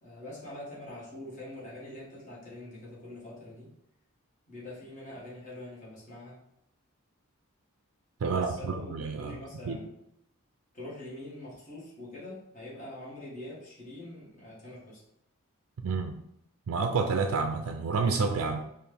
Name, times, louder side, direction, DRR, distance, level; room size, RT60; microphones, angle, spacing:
voice 1, 0.0-3.7 4.5-6.4 8.3-9.9 10.7-15.0, left 1 dB, 35° left, -7 dB, 1.5 m, -44 dB
voice 2, 8.2-9.4 9.7-9.8 15.8-16.2 16.7-18.6, right 4 dB, 65° right, 4 dB, 0.3 m, -29 dB
4.1 x 2.4 x 3.4 m, 0.78 s
head